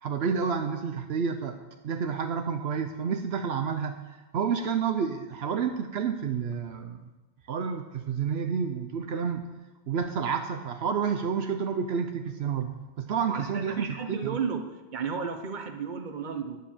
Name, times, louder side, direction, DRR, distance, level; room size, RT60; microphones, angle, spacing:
voice 1, 0.0-1.6 1.8-4.0 4.3-7.0 7.5-9.5 9.9-14.4, right 6 dB, 75° right, 6 dB, 0.9 m, -29 dB
voice 2, 13.2-14.6 14.9-16.6, right 6 dB, 50° right, 6 dB, 1.1 m, -33 dB
10.0 x 7.6 x 7.2 m, 1.2 s
omnidirectional pair, 1.1 m